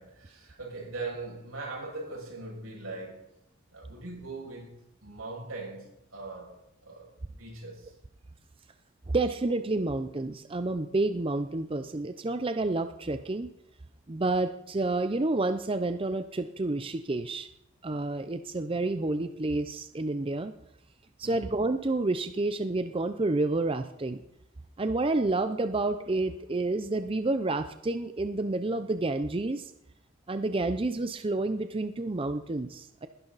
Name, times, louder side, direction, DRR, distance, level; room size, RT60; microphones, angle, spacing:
voice 1, 0.0-3.3 3.7-7.9 21.2-21.6, right 3 dB, 90° right, 6.6 m, -41 dB
voice 2, 9.1-13.5 14.1-17.5 17.8-20.5 21.2-24.2 24.8-29.7 30.3-33.1, right 2 dB, 25° right, 0.5 m, -29 dB
20.0 x 11.5 x 4.0 m
head